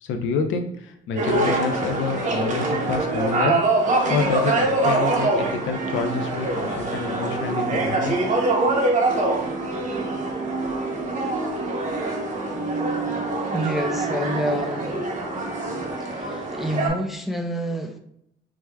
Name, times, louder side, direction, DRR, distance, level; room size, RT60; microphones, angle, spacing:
voice 1, 0.0-3.6 4.1-8.2, left 5 dB, 75° left, 5 dB, 0.5 m, -27 dB
sound 1, 1.2-16.9, right 2 dB, 40° right, 0.7 m, -24 dB
voice 2, 13.5-15.1 16.0-18.0, equal, ahead, 3 dB, 0.3 m, -28 dB
4.6 x 2.2 x 2.2 m, 0.74 s
cardioid pair, 90°, 20 cm